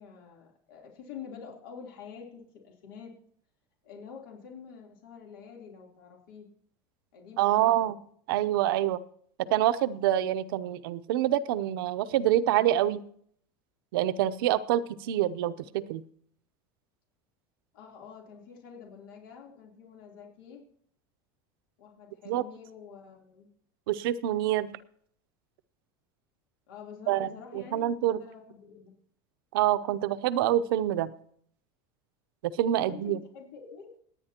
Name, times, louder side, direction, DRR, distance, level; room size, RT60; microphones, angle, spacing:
voice 1, 0.0-3.1 3.8-6.5 7.1-8.0 17.7-20.6 21.8-23.5 26.7-28.9 32.8-33.9, left 6 dB, 90° left, -1 dB, 3.4 m, -47 dB
voice 2, 7.4-8.0 8.3-9.0 9.4-13.0 13.9-16.0 22.3-22.4 23.9-24.7 27.1-27.3 27.5-28.2 29.5-31.1 32.4-33.2, right 12 dB, 85° right, 12 dB, 0.7 m, -26 dB
28.0 x 9.6 x 2.9 m, 0.63 s
supercardioid pair, 150°, 11 cm